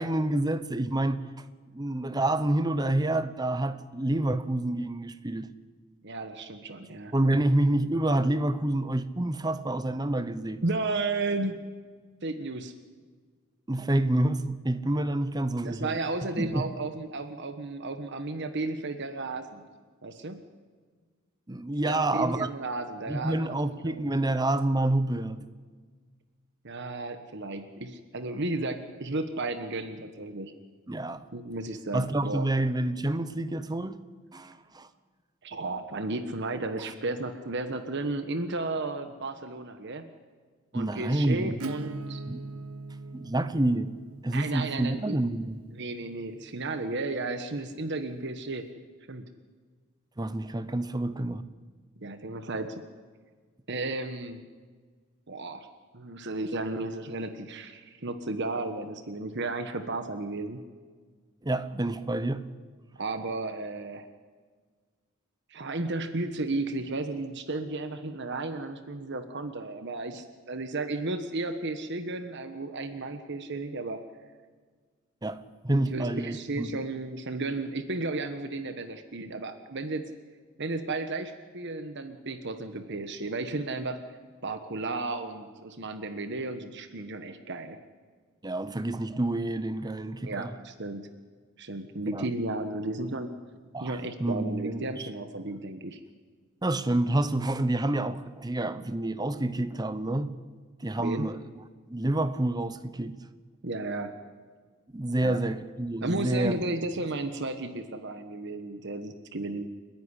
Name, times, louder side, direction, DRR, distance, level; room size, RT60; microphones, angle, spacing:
voice 1, 0.0-1.4 1.7-5.5 7.1-10.6 13.7-16.0 16.4-16.7 21.5-22.5 23.1-25.4 30.9-31.3 31.9-34.0 34.3-34.9 36.8-36.9 40.7-41.6 42.3-42.4 43.1-43.9 44.2-45.6 50.2-51.4 61.4-62.4 75.2-76.7 88.4-90.6 92.1-92.3 93.7-95.1 96.6-100.3 100.8-101.4 101.9-103.2 104.9-106.6, right 1 dB, 20° right, 0.8 m, -28 dB
voice 2, 6.0-7.1 10.6-11.6 12.2-12.7 15.6-19.6 20.0-20.4 21.8-23.5 23.8-24.0 26.6-30.5 31.3-32.5 35.4-40.0 40.7-42.2 44.3-48.6 49.1-49.3 52.0-52.8 53.7-54.4 55.3-55.7 55.9-60.6 63.0-64.1 65.5-74.0 75.9-80.1 80.6-84.0 84.4-87.8 90.2-91.1 91.6-93.3 93.8-96.0 101.0-101.3 103.6-104.1 105.2-105.4 106.0-109.6, right 2 dB, 55° right, 1.3 m, -33 dB
Acoustic guitar / Strum, 41.6-47.1, right 2 dB, 80° right, 0.8 m, -41 dB
30.0 x 10.5 x 9.9 m
head